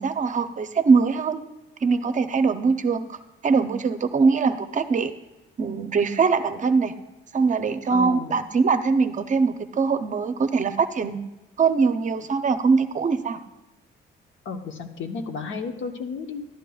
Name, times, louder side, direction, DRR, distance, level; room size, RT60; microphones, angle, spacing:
voice 1, 0.0-1.4 1.8-3.2 3.4-5.1 5.6-7.0 7.3-11.2 11.6-13.4, right 5 dB, 40° right, 10 dB, 0.6 m, -22 dB
voice 2, 7.9-8.4 14.4-16.4, left 4 dB, 75° left, 5 dB, 1.0 m, -32 dB
12.0 x 10.5 x 2.3 m, 1.0 s
cardioid pair, 90°, 20 cm